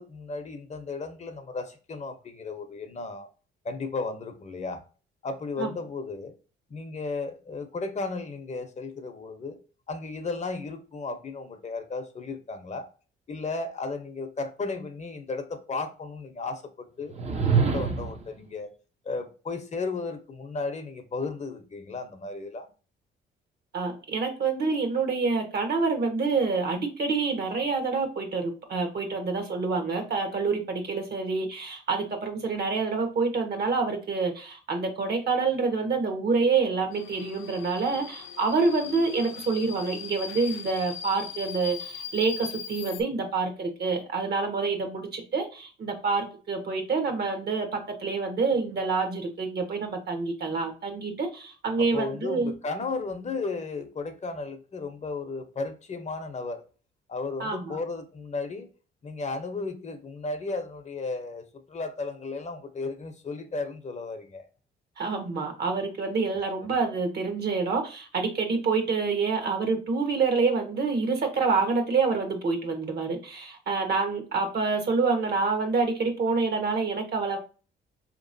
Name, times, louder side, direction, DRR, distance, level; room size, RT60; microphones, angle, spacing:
voice 1, 0.0-3.3 3.6-4.8 5.2-6.3 6.7-9.6 9.9-12.9 13.3-18.7 19.0-22.7 51.8-56.6 57.1-58.7 59.0-64.5 66.6-66.7, left 3 dB, 35° left, 0.7 m, -34 dB
sound 1, 17.1-18.3, right 5 dB, 30° right, 0.6 m, -25 dB
voice 2, 23.7-52.5 57.4-57.8 65.0-77.4, right 4 dB, 55° right, 1.1 m, -27 dB
Subway metro underground, 36.9-43.0, left 8 dB, 75° left, 0.5 m, -40 dB
4.6 x 2.9 x 2.6 m
cardioid pair, 90°, 20 cm